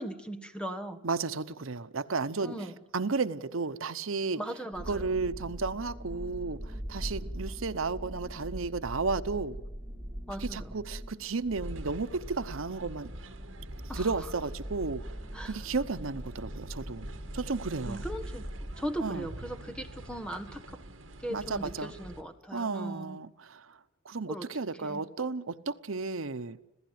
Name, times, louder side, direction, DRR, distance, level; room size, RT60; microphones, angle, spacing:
voice 1, 0.0-1.0 2.4-2.8 4.3-5.1 10.3-10.7 13.9-14.1 15.3-15.6 17.8-18.5 18.8-20.8 21.2-23.2 24.3-24.5 24.8-25.0, right 1 dB, 5° left, 1.5 m, -38 dB
voice 2, 1.0-4.4 4.8-9.6 10.4-13.1 13.9-15.0 15.4-17.1 17.3-18.1 19.0-19.3 21.3-21.9 22.5-23.8 24.0-26.6, right 4 dB, 90° right, 0.9 m, -33 dB
sound 1, 4.7-18.7, equal, 15° right, 5.4 m, -41 dB
sound 2, 11.6-22.2, right 1 dB, 70° right, 2.3 m, -47 dB
26.5 x 16.5 x 9.4 m
head